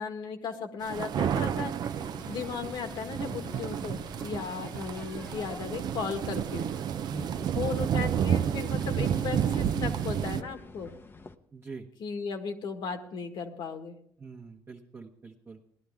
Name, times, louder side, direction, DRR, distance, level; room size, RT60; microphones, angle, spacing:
voice 1, 0.0-1.7 2.3-6.7 7.5-10.9 12.0-14.0, left 5 dB, 75° left, 6 dB, 1.7 m, -36 dB
sound 1, 0.8-10.4, right 9 dB, 60° right, 0.5 m, -31 dB
sound 2, 1.8-11.4, left 3 dB, 30° left, 0.7 m, -46 dB
voice 2, 7.1-7.5 11.5-11.9 14.2-15.6, right 3 dB, 30° right, -2 dB, 1.1 m, -43 dB
18.5 x 11.5 x 3.5 m, 0.66 s
cardioid pair, 110°, 8 cm